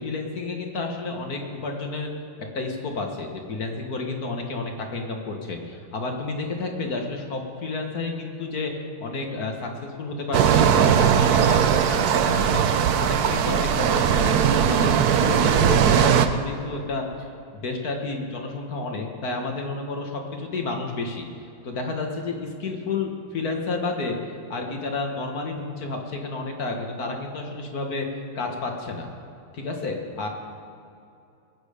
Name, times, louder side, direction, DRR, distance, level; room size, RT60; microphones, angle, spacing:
voice 1, 0.0-2.1 2.5-17.3 17.5-21.3 21.6-24.2 24.5-28.1 28.3-29.1 29.5-30.3, left 3 dB, 45° left, 2 dB, 1.7 m, -31 dB
sound 1, 10.3-16.3, right 8 dB, 70° right, 0.9 m, -19 dB
21.5 x 8.9 x 5.1 m, 2.6 s
omnidirectional pair, 2.4 m